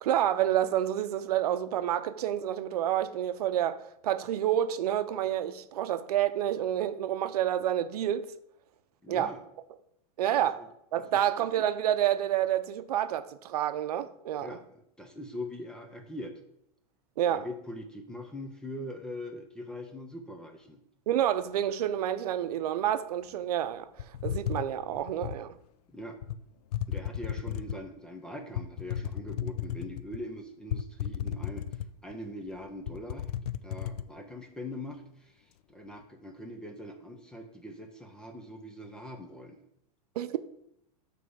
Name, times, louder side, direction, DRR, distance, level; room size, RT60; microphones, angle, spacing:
voice 1, 0.0-3.8 4.0-8.3 9.1-9.3 10.2-10.6 10.9-14.6 17.2-17.5 21.1-25.6 40.2-40.4, right 11 dB, 80° right, 0.6 m, -29 dB
voice 2, 9.0-9.4 10.6-10.7 11.1-11.2 14.4-14.6 15.0-16.4 17.3-20.8 25.9-26.2 26.9-33.3 33.6-39.6, left 1 dB, 5° left, 0.4 m, -42 dB
sound 1, 24.0-25.4 26.2-26.4 26.7-27.9 28.5-30.2 30.7-32.1 32.5-32.6 32.9-34.1, left 10 dB, 85° left, 0.4 m, -34 dB
7.3 x 3.3 x 6.3 m
supercardioid pair, 165°, 19 cm